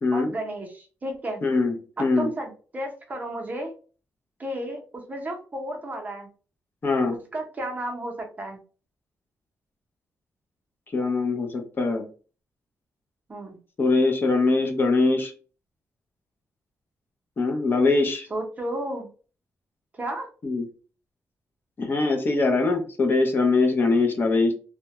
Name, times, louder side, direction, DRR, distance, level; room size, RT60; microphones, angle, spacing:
voice 1, 0.1-1.4 2.0-3.7 4.4-6.3 7.1-8.6 13.3-13.6 18.3-19.1 19.9-20.3, right 1 dB, 25° right, 2 dB, 0.6 m, -33 dB
voice 2, 1.4-2.3 6.8-7.2 10.9-12.0 13.8-15.3 17.4-18.3 20.4-20.7 21.8-24.5, left 3 dB, 35° left, 3 dB, 0.5 m, -22 dB
2.2 x 2.1 x 2.8 m, 0.37 s
wide cardioid pair, 135°, 6 cm